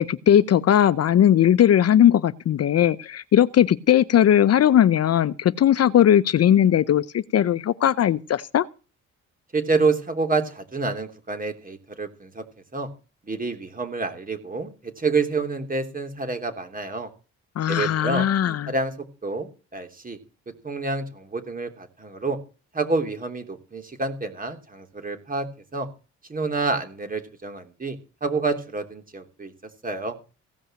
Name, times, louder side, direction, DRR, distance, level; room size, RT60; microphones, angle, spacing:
voice 1, 0.0-8.7 17.6-18.7, left 10 dB, 55° left, 0.8 m, -18 dB
voice 2, 9.5-12.4 12.7-12.9 13.2-17.1 17.7-18.3 18.7-20.2 20.6-22.4 22.7-25.5 25.7-25.9 26.3-29.5 29.8-30.2, right 3 dB, 30° right, 3.1 m, -28 dB
16.5 x 5.5 x 8.9 m
cardioid pair, 90°, 30 cm